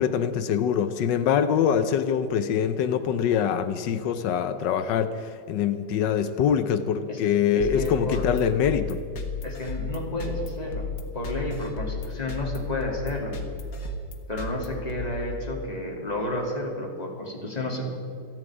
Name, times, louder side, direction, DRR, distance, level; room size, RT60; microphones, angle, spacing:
voice 1, 0.0-9.0, left 8 dB, 85° left, 10 dB, 1.4 m, -24 dB
voice 2, 7.5-8.3 9.4-10.9 11.1-13.4 14.3-17.9, left 1 dB, 20° left, -1 dB, 2.8 m, -31 dB
sound 1, 7.6-15.8, left 4 dB, 55° left, 2.0 m, -34 dB
28.0 x 9.8 x 4.9 m, 2.5 s
omnidirectional pair, 1.9 m